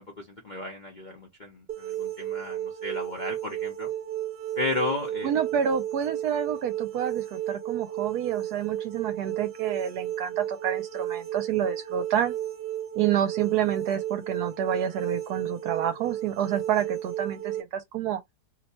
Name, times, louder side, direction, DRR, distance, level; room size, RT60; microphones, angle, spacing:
voice 1, 0.2-3.9 4.6-5.3, left 2 dB, 50° left, 0.5 m, -33 dB
sound 1, 1.7-17.6, right 12 dB, 55° right, 0.7 m, -33 dB
voice 2, 5.2-12.4 13.0-18.2, right 9 dB, 75° right, 1.1 m, -28 dB
2.9 x 2.1 x 4.1 m
omnidirectional pair, 1.8 m